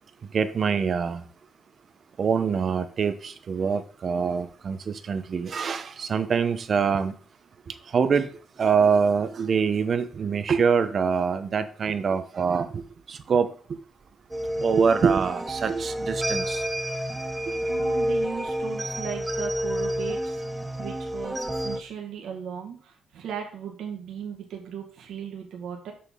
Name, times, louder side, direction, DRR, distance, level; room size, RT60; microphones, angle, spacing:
voice 1, 0.3-1.2 2.2-3.1 3.5-4.8 5.1-7.1 7.9-8.3 8.6-12.7 13.3-13.5 14.6-16.6, right 6 dB, 50° right, 0.9 m, -24 dB
sound 1, 14.3-21.8, equal, 15° right, 0.8 m, -29 dB
voice 2, 17.6-20.3 20.8-21.4 21.6-22.8 23.1-25.9, right 8 dB, 80° right, 1.7 m, -37 dB
6.9 x 6.8 x 3.7 m
cardioid pair, 95°, 0 cm